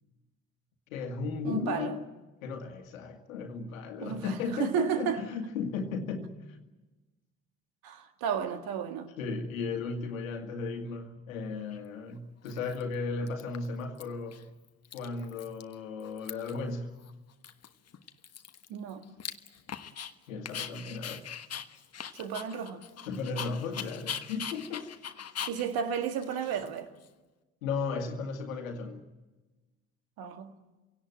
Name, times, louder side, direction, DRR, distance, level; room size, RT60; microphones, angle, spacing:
voice 1, 0.9-2.0 2.4-6.3 9.2-14.4 14.9-17.0 20.3-21.2 23.1-24.9 27.6-29.0, left 4 dB, 80° left, 2.0 m, -35 dB
voice 2, 1.4-2.0 4.0-5.2 7.8-9.1 18.7-19.1 22.2-22.9 25.5-26.9 30.2-30.5, right 8 dB, 60° right, 2.0 m, -33 dB
Dog, 11.7-11.8 12.5-12.9 13.3-14.0 14.3-14.4 14.7-15.7 16.0-16.7 17.0-17.1 17.4-20.1 20.5-27.1, left 8 dB, 40° left, 1.3 m, -41 dB
26.5 x 17.5 x 9.2 m
hypercardioid pair, 50°, 40 cm